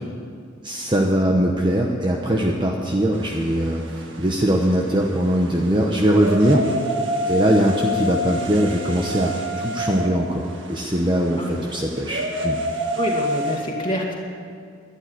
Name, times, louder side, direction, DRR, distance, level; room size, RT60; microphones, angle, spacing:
voice 1, 0.6-6.7 7.3-12.6, right 1 dB, 25° right, 0 dB, 1.0 m, -21 dB
sound 1, 3.1-13.6, left 1 dB, 65° right, 1.7 m, -29 dB
voice 2, 12.9-14.1, equal, 25° left, -3 dB, 2.2 m, -27 dB
12.5 x 11.0 x 9.4 m, 2.3 s
head